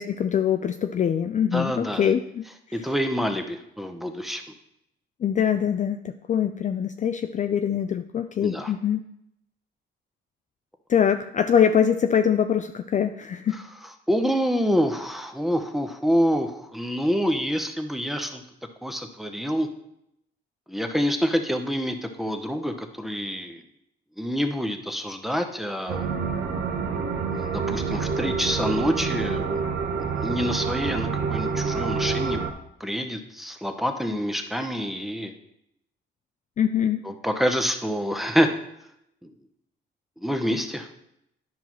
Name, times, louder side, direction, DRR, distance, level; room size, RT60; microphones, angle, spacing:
voice 1, 0.0-2.8 5.2-9.0 10.9-13.6 36.6-37.0, left 8 dB, 40° left, 8 dB, 0.4 m, -23 dB
voice 2, 1.5-2.1 2.7-4.4 8.4-8.7 14.1-18.4 18.8-19.7 20.7-23.6 24.2-26.1 27.3-29.6 30.2-32.4 32.8-35.3 37.0-38.5 40.2-40.9, equal, ahead, 6 dB, 0.8 m, -26 dB
sound 1, 25.9-32.5, right 5 dB, 65° right, 0.9 m, -27 dB
10.0 x 5.6 x 3.0 m, 0.78 s
cardioid pair, 90°, 20 cm